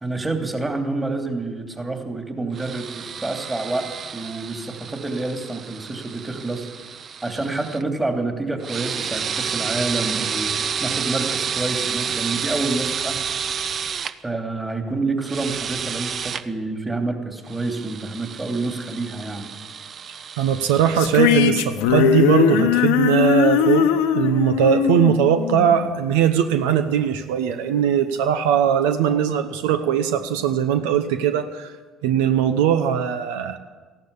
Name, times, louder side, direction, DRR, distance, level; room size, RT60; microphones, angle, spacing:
voice 1, 0.0-3.8 4.1-6.7 7.2-10.5 10.8-13.1 14.2-19.5, right 3 dB, 15° right, 4 dB, 3.0 m, -28 dB
Parafusadeira screwdriverl, 2.5-7.8 8.6-14.1 15.2-16.4 17.5-21.1, right 7 dB, 50° right, 0.8 m, -30 dB
voice 2, 20.4-23.9 24.1-31.7 32.0-33.6, right 9 dB, 85° right, 8 dB, 0.9 m, -20 dB
sound 1, 21.0-26.3, left 9 dB, 80° left, 1.0 m, -20 dB
14.5 x 12.0 x 8.3 m, 1.4 s
hypercardioid pair, 70°, 0 cm